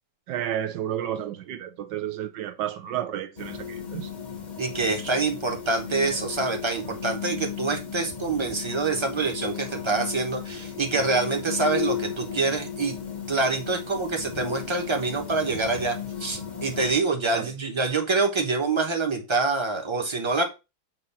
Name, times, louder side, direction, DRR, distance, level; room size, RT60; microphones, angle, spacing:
voice 1, 0.3-4.1 17.3-17.5, right 11 dB, 75° right, 1.4 m, -31 dB
sound 1, 3.4-17.0, left 7 dB, 30° left, 0.9 m, -35 dB
voice 2, 4.6-13.0 13.3-20.4, right 3 dB, 20° right, 0.9 m, -26 dB
7.5 x 2.7 x 5.5 m
omnidirectional pair, 2.0 m